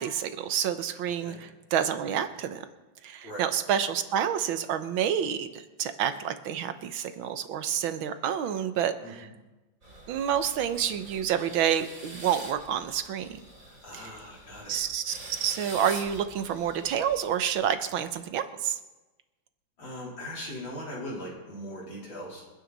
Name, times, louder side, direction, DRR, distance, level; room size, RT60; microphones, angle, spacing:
voice 1, 0.0-2.7 3.0-9.3 10.1-13.4 13.9-14.1 14.7-18.8, right 9 dB, 85° right, 10 dB, 1.7 m, -29 dB
sound 1, 9.8-17.8, right 1 dB, 45° right, 3.4 m, -46 dB
voice 2, 13.6-14.8 19.8-22.5, equal, 70° left, -4 dB, 4.5 m, -40 dB
28.0 x 9.4 x 4.1 m, 1.1 s
omnidirectional pair, 2.1 m